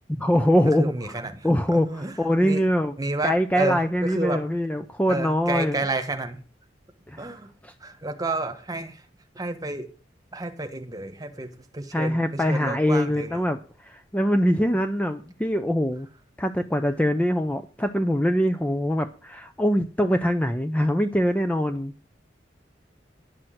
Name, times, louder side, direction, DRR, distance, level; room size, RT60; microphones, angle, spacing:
voice 1, 0.1-0.9 1.4-2.9 3.2-5.9 7.1-7.2 7.6-7.7 11.9-16.1 16.4-21.9, equal, 10° left, 8 dB, 0.6 m, -23 dB
voice 2, 0.6-1.4 1.7-2.1 2.4-2.6 3.0-4.4 5.1-6.4 7.2-7.5 7.8-9.0 9.3-9.9 10.3-13.4, right 2 dB, 20° right, 7 dB, 1.4 m, -30 dB
11.0 x 6.2 x 7.7 m, 0.37 s
head